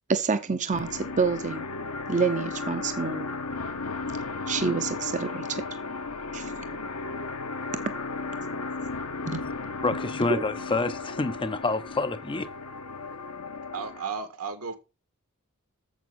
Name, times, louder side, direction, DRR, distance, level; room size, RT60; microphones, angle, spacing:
voice 1, 0.1-1.6 2.1-3.3 4.5-5.6 6.3-6.5 9.3-9.4, right 5 dB, 35° right, 0.7 m, -27 dB
sound 1, 0.7-14.0, left 3 dB, 75° left, 1.2 m, -35 dB
voice 2, 9.8-12.5, left 3 dB, 25° left, 0.6 m, -28 dB
voice 3, 13.7-14.8, right 5 dB, 75° right, 1.7 m, -34 dB
7.2 x 7.1 x 6.0 m
head